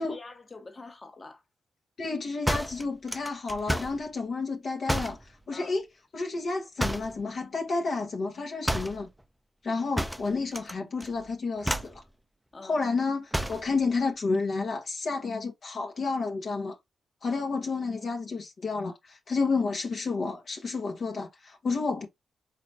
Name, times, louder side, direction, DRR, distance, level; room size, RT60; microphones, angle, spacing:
voice 1, 0.0-1.4 5.5-5.8 12.5-12.8 17.3-17.4, left 3 dB, 40° left, 1.3 m, -46 dB
voice 2, 2.0-5.2 5.5-5.9 6.1-9.1 9.6-12.0 12.6-16.8 17.2-22.1, left 4 dB, 60° left, 1.2 m, -30 dB
sound 1, 2.5-4.0 4.9-5.2 6.8-7.2 8.6-9.0 10.0-10.7 11.0-11.3 11.6-12.0 13.3-13.7, equal, 5° right, 0.5 m, -30 dB
4.8 x 3.4 x 2.8 m
supercardioid pair, 50°, 0 cm